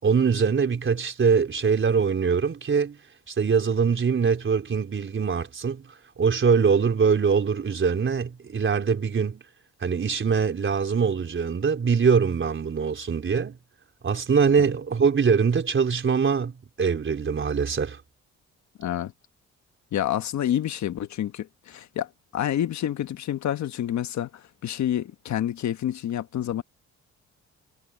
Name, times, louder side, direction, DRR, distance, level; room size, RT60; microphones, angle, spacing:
voice 1, 0.0-3.0 3.3-5.9 6.2-9.4 9.8-13.6 14.0-16.5 16.8-18.0, right 6 dB, 40° right, 4.3 m, -23 dB
voice 2, 18.8-19.1 19.9-26.6, left 11 dB, 65° left, 1.4 m, -28 dB
cardioid pair, 90°, 30 cm